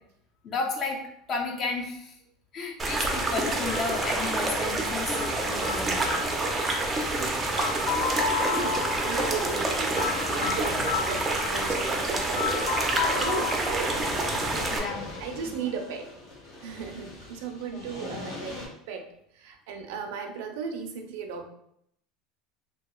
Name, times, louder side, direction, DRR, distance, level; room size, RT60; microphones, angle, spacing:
voice 1, 0.4-1.0 1.3-2.1 2.5-6.2 14.7-15.2 17.7-17.9, left 3 dB, 35° left, 2 dB, 0.6 m, -33 dB
sound 1, 2.8-14.8, right 2 dB, 15° right, 0.4 m, -28 dB
sound 2, 3.7-15.4, left 6 dB, 85° left, 0.5 m, -34 dB
sound 3, 7.0-18.7, left 2 dB, 70° left, 1.5 m, -42 dB
voice 2, 7.1-14.3 15.2-16.1 16.6-21.5, right 5 dB, 75° right, 5 dB, 0.4 m, -36 dB
2.8 x 2.7 x 2.3 m, 0.72 s
supercardioid pair, 140°, 0 cm